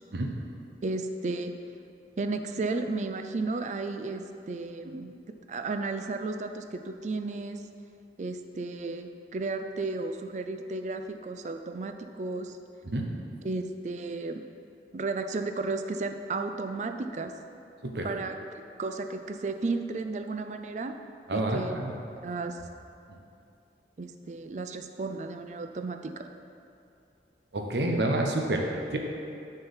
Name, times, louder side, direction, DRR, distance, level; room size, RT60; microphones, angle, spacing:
voice 1, 0.8-1.5 2.2-7.7 8.2-12.6 13.4-14.4 14.9-17.3 18.0-18.4 18.8-20.9 21.3-21.8 22.1-22.6 24.0-26.3, right 3 dB, 40° right, 6 dB, 0.4 m, -33 dB
voice 2, 21.3-21.9 27.5-29.0, right 1 dB, 70° right, 2 dB, 0.8 m, -28 dB
6.3 x 4.6 x 5.6 m, 2.6 s
head